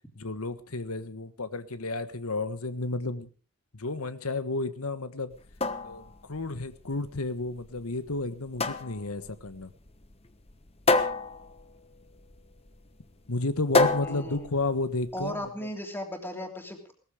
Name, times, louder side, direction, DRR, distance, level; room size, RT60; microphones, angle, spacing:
voice 1, 0.1-3.3 3.7-5.3 5.8-9.7 13.3-15.7, left 2 dB, 85° left, 12 dB, 1.5 m, -32 dB
sound 1, 5.3-15.3, left 3 dB, 25° left, 1.1 m, -30 dB
voice 2, 14.0-14.5 15.1-16.9, left 1 dB, 10° left, 4 dB, 3.0 m, -36 dB
19.0 x 14.0 x 4.9 m, 0.36 s
head